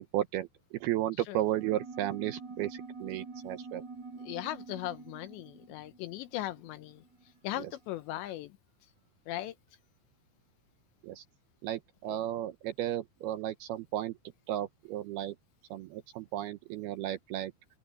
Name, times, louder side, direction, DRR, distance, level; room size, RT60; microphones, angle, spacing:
voice 1, 0.0-3.8 7.6-7.7 11.0-11.2 11.6-14.1 14.5-15.4 15.7-17.5, right 13 dB, 85° right, 2.3 m, -34 dB
sound 1, 1.4-7.4, right 4 dB, 60° right, 0.8 m, -46 dB
voice 2, 4.2-7.0 7.4-8.5 9.3-9.6 12.1-12.2, left 14 dB, 80° left, 2.9 m, -38 dB
open air
omnidirectional pair, 5.4 m